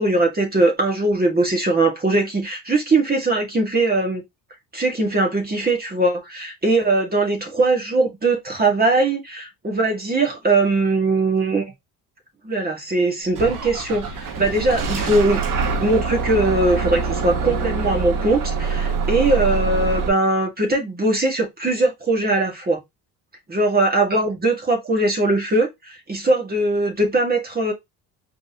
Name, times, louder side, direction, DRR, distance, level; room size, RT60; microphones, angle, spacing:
voice 1, 0.0-4.2 4.7-11.6 12.4-15.4 15.7-22.8 23.5-27.7, right 2 dB, 25° right, 2.1 m, -20 dB
Bus / Engine starting, 13.3-20.1, right 5 dB, 55° right, 1.4 m, -24 dB
5.0 x 3.7 x 2.9 m
supercardioid pair, 85°, 38 cm